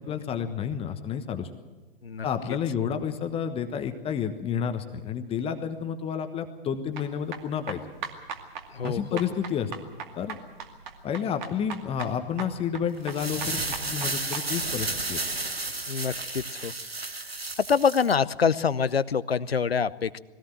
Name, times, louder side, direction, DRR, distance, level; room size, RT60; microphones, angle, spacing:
voice 1, 0.0-1.5 2.2-7.8 8.8-9.7 10.1-10.4 11.0-15.2, left 8 dB, 20° left, 7 dB, 1.2 m, -30 dB
sound 1, 6.9-14.5, right 7 dB, 50° right, 2.4 m, -39 dB
voice 2, 8.7-9.2 15.9-16.7 17.7-20.2, left 6 dB, 80° left, 18 dB, 0.7 m, -25 dB
sound 2, 13.0-18.1, right 2 dB, 90° right, 1.3 m, -32 dB
20.5 x 17.0 x 7.7 m, 1.2 s
figure-of-eight pair, 110°, 30 cm